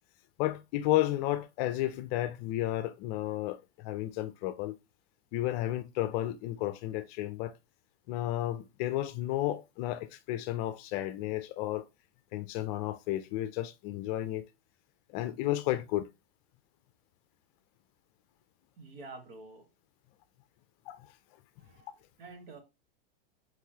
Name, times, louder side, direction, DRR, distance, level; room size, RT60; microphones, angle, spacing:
voice 1, 0.4-4.8 5.3-7.5 8.1-11.9 12.3-14.5 15.1-16.1 20.9-21.1, left 15 dB, 40° left, 0.5 m, -32 dB
voice 2, 18.8-19.7 21.6-22.6, right 3 dB, 70° right, 1.7 m, -49 dB
4.6 x 4.0 x 2.8 m
supercardioid pair, 135°, 30 cm